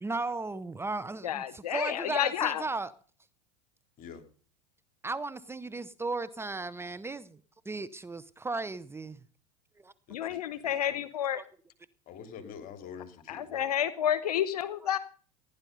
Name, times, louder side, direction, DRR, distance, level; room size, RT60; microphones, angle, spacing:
voice 1, 0.0-2.9 5.0-9.2 9.8-9.9 11.3-11.5, right 3 dB, 15° right, 0.7 m, -36 dB
voice 2, 1.2-2.6 10.1-11.4 13.3-15.0, left 10 dB, 85° left, 0.9 m, -30 dB
voice 3, 10.1-11.0 12.1-13.6, left 7 dB, 45° left, 3.3 m, -46 dB
16.0 x 10.5 x 5.3 m
hypercardioid pair, 90°, 19 cm